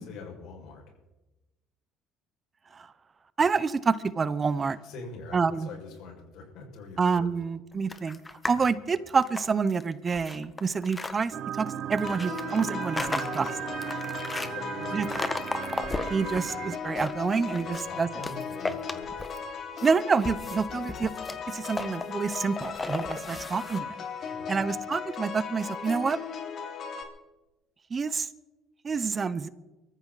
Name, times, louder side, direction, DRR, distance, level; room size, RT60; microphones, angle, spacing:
voice 1, 0.1-0.8 4.7-7.3 14.2-15.2 17.6-19.3 24.2-24.6, left 4 dB, 70° left, 1 dB, 6.1 m, -44 dB
voice 2, 3.4-4.8 5.3-5.7 7.0-8.2 8.5-13.7 14.9-15.1 16.1-18.1 19.8-21.1 21.5-24.0 24.5-26.2 27.9-28.3 28.8-29.5, right 5 dB, 35° right, 15 dB, 0.9 m, -28 dB
sound 1, 7.9-8.7 9.1-11.1 12.0-14.5 15.0-16.4 16.8-17.9 18.2-19.5 19.8-23.8, left 3 dB, 20° left, 1.6 m, -35 dB
sound 2, 11.3-16.8, right 10 dB, 60° right, 0.8 m, -36 dB
sound 3, 12.0-27.0, left 6 dB, 50° left, 3.2 m, -38 dB
23.5 x 14.5 x 4.2 m, 1.0 s
supercardioid pair, 80°, 0 cm